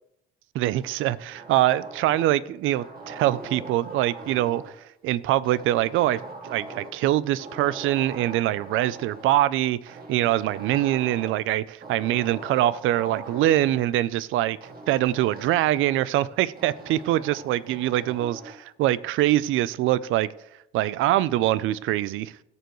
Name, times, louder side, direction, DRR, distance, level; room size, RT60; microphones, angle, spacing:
voice 1, 0.5-4.6 5.0-14.6 14.9-20.3 20.7-22.3, right 14 dB, 90° right, 18 dB, 0.5 m, -24 dB
sound 1, 0.8-2.4 2.7-4.8 5.4-7.1 7.4-9.4 9.9-11.4 11.8-13.8 14.6-16.1 16.6-18.6, right 2 dB, 50° right, 2.1 m, -42 dB
17.0 x 6.9 x 3.1 m, 0.81 s
cardioid pair, 90°, 20 cm